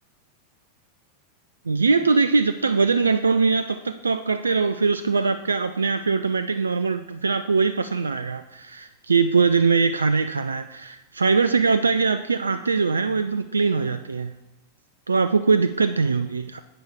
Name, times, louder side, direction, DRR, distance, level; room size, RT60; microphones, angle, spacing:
voice 1, 1.7-14.3 15.1-16.6, right 4 dB, 75° right, 11 dB, 0.3 m, -22 dB
10.5 x 8.0 x 3.5 m, 0.98 s
figure-of-eight pair, 90°, 0 cm